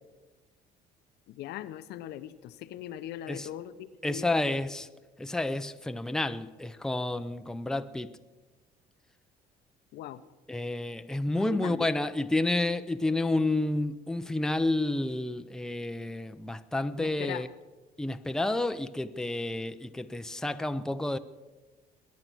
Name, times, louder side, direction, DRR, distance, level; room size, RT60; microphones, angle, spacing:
voice 1, 1.3-4.6 9.9-10.2 11.5-11.8 17.0-17.4, left 12 dB, 75° left, 0.7 m, -40 dB
voice 2, 4.0-4.9 5.2-8.2 10.5-17.5 18.0-21.2, left 2 dB, 5° left, 0.6 m, -30 dB
23.0 x 9.5 x 6.2 m
cardioid pair, 110°, 17 cm